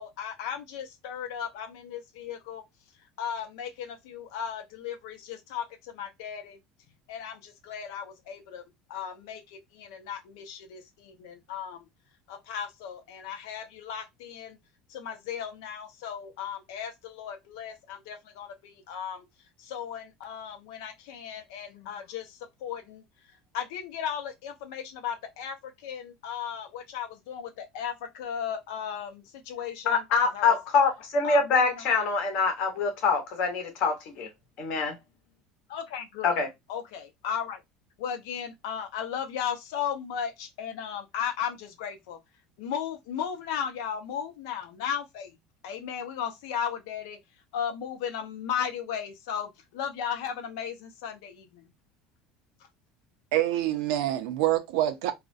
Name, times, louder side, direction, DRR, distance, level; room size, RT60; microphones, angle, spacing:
voice 1, 0.0-2.6 3.2-6.6 7.1-8.6 8.9-11.9 12.3-14.6 14.9-19.2 19.6-23.0 23.5-30.0 30.3-30.5 31.2-32.0 35.7-36.4 36.7-37.6 38.0-42.2 42.6-45.4 45.6-47.2 47.5-51.7, left 8 dB, 85° left, 0.6 m, -36 dB
voice 2, 29.9-34.3 34.6-35.0 36.2-36.5, left 4 dB, 45° left, 0.8 m, -25 dB
voice 3, 53.3-55.1, right 13 dB, 85° right, 0.5 m, -26 dB
2.4 x 2.1 x 2.5 m
cardioid pair, 175°, 2 cm